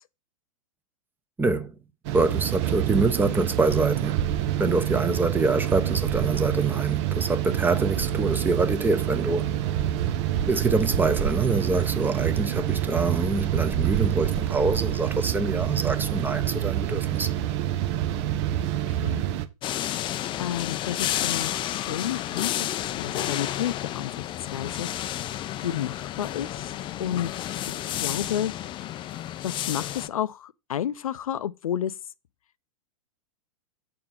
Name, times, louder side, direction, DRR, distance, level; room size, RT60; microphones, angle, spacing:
voice 1, 1.4-1.7 2.1-4.2 4.6-9.5 10.5-17.3, right 3 dB, 10° right, 0.9 m, -25 dB
sound 1, 2.0-19.4, right 11 dB, 50° right, 0.9 m, -27 dB
voice 2, 18.9-19.2 20.4-22.5 23.0-24.9 25.6-26.7 27.0-27.3 27.7-28.5 29.4-31.9, left 10 dB, 75° left, 0.6 m, -31 dB
sound 2, 19.6-30.1, left 12 dB, 30° left, 0.5 m, -31 dB
7.5 x 4.4 x 5.4 m
hypercardioid pair, 105°, 18 cm